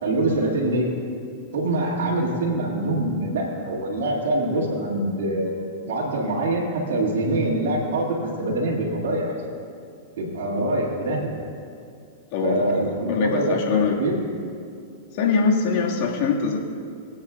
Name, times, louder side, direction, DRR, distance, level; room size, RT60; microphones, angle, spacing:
voice 1, 0.0-0.9 1.5-5.6 5.9-9.4 10.2-11.3 12.4-13.6 13.9-14.1, right 1 dB, 70° right, -7 dB, 2.3 m, -24 dB
voice 2, 12.3-12.6 13.1-14.0 15.2-16.6, left 5 dB, 55° left, -1 dB, 1.9 m, -22 dB
23.5 x 8.7 x 2.5 m, 2.4 s
hypercardioid pair, 115°, 0 cm